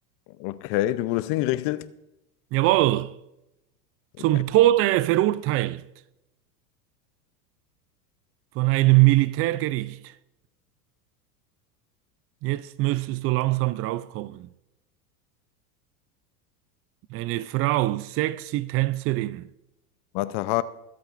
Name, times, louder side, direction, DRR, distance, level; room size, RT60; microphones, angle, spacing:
voice 1, 0.4-1.9 20.1-20.6, left 16 dB, 55° left, 0.7 m, -26 dB
voice 2, 2.5-3.1 4.2-5.8 8.6-10.1 12.4-14.5 17.1-19.5, right 17 dB, 30° right, 0.4 m, -22 dB
22.5 x 8.3 x 2.5 m
hypercardioid pair, 100°, 47 cm